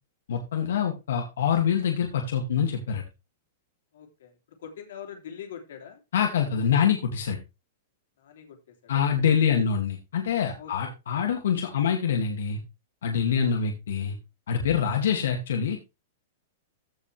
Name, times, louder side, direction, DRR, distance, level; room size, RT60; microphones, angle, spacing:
voice 1, 0.3-3.0 6.1-7.4 8.9-12.6 13.0-14.2 14.5-15.8, left 7 dB, 80° left, 2 dB, 2.3 m, -25 dB
voice 2, 3.9-6.0 8.2-9.1 10.6-10.9 13.4-13.7 14.8-14.9, left 8 dB, 65° left, 5 dB, 3.2 m, -44 dB
15.5 x 5.6 x 3.4 m, 0.26 s
supercardioid pair, 180°, 0 cm